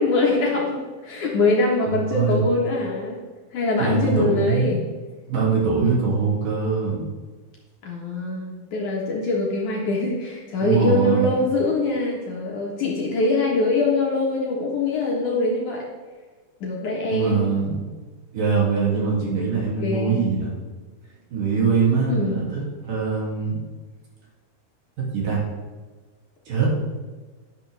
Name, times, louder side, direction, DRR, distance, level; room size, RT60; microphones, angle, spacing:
voice 1, 0.0-3.2 3.5-4.9 7.8-15.8 16.6-17.4 19.8-20.3 22.1-22.5, left 2 dB, 55° left, -3 dB, 2.5 m, -23 dB
voice 2, 2.1-2.4 3.8-4.8 5.3-7.0 10.6-11.3 17.1-17.8 18.3-20.5 21.3-23.6 25.0-25.4 26.5-26.7, right 5 dB, 55° right, -4 dB, 4.1 m, -22 dB
11.5 x 11.5 x 3.5 m, 1.3 s
omnidirectional pair, 4.8 m